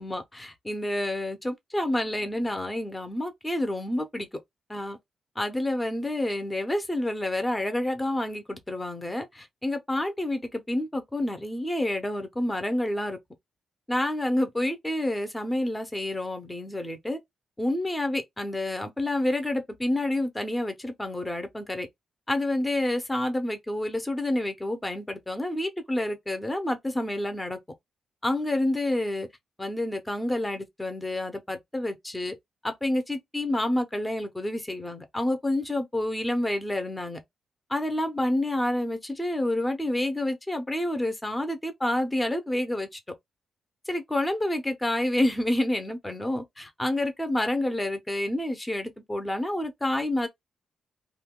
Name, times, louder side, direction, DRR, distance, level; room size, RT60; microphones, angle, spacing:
voice 1, 0.0-4.3 4.7-5.0 5.4-13.2 13.9-17.2 17.6-21.9 22.3-27.6 28.2-29.3 29.6-32.3 32.6-37.2 37.7-43.0 43.9-50.3, left 1 dB, 10° left, 0.7 m, -28 dB
2.7 x 2.2 x 3.6 m
wide cardioid pair, 140°, 0 cm